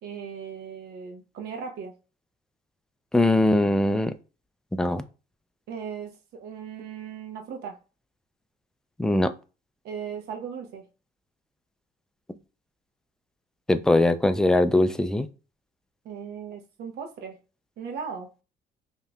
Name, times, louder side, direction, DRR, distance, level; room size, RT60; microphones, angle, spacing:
voice 1, 0.0-1.9 5.7-7.8 9.8-10.8 16.0-17.4 17.8-18.3, right 6 dB, 75° right, 0.9 m, -37 dB
voice 2, 3.1-4.1 4.7-5.0 9.0-9.3 13.7-15.3, left 1 dB, 5° left, 0.3 m, -21 dB
5.1 x 2.8 x 2.3 m
cardioid pair, 110°, 17 cm